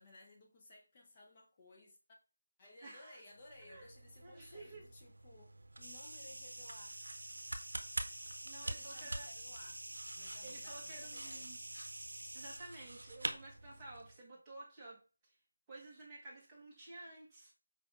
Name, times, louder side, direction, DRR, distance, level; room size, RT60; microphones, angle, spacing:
voice 1, 0.0-2.0 2.6-7.0 8.6-9.8 10.1-11.5 12.6-12.7, left 2 dB, 25° left, 0.9 m, -59 dB
voice 2, 2.8-3.2 3.6-3.9 4.2-4.8 8.4-9.3 10.4-11.6 12.3-15.4 15.7-17.5, right 2 dB, 10° right, 1.1 m, -52 dB
sound 1, 3.4-14.2, right 1 dB, 70° right, 0.7 m, -47 dB
sound 2, 5.8-12.6, right 1 dB, 85° right, 0.3 m, -48 dB
5.0 x 3.4 x 2.5 m
figure-of-eight pair, 170°, 0 cm